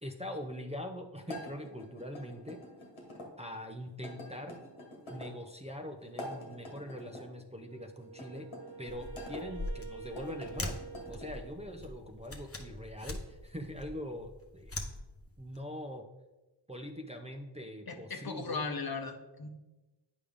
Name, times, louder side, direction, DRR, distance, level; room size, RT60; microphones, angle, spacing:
voice 1, 0.0-2.6 3.4-4.6 5.1-8.5 8.8-10.8 11.1-14.8 15.4-16.1 16.7-18.6, equal, 15° right, 2 dB, 0.7 m, -43 dB
sound 1, 1.2-3.3 4.0-5.3 6.0-7.3 8.1-9.4 10.0-11.4, left 1 dB, 90° left, 1.6 m, -46 dB
Wind instrument woodwind instrument, 7.7-12.0, right 6 dB, 45° right, 1.1 m, -48 dB
sound 2, 8.9-15.6, left 2 dB, 30° left, 1.0 m, -43 dB
voice 2, 17.9-19.5, left 4 dB, 50° left, 5 dB, 1.0 m, -37 dB
8.3 x 5.0 x 3.6 m, 1.1 s
cardioid pair, 40°, 47 cm